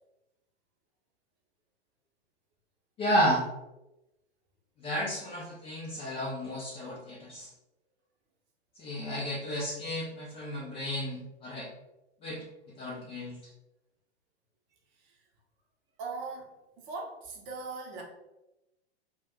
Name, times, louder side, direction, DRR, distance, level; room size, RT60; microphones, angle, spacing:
voice 1, 3.0-3.4 4.8-7.5 8.8-11.7 12.2-12.4 12.8-13.4, equal, 15° left, -5 dB, 0.4 m, -32 dB
voice 2, 16.0-18.0, right 3 dB, 35° right, 0 dB, 0.7 m, -40 dB
2.5 x 2.2 x 3.4 m, 0.95 s
hypercardioid pair, 110°, 33 cm